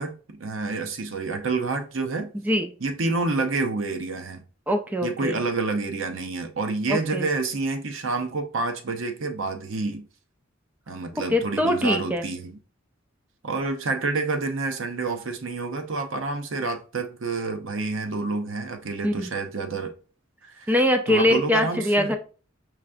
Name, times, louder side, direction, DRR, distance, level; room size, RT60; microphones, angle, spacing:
voice 1, 0.0-2.3 2.8-4.4 5.0-10.1 10.9-12.6 13.4-19.9 20.4-20.7 21.1-22.1, right 3 dB, 70° right, 0.7 m, -28 dB
voice 2, 4.7-5.4 6.9-7.3 11.3-12.3 19.0-19.3 20.7-22.1, left 1 dB, 10° right, 0.4 m, -23 dB
4.9 x 3.3 x 2.5 m
head